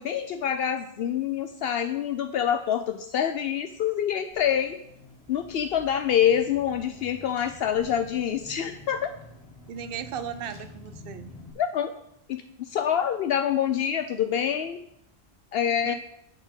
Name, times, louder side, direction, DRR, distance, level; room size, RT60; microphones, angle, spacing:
voice 1, 0.0-4.8 5.3-9.1 11.6-11.9 12.3-14.8 15.5-15.9, left 9 dB, 75° left, 7 dB, 0.8 m, -26 dB
Car / Engine, 4.3-11.5, left 2 dB, 35° left, 1.5 m, -48 dB
voice 2, 9.7-11.3 15.8-15.9, right 8 dB, 65° right, 11 dB, 0.8 m, -36 dB
9.5 x 4.3 x 6.2 m, 0.75 s
omnidirectional pair, 1.1 m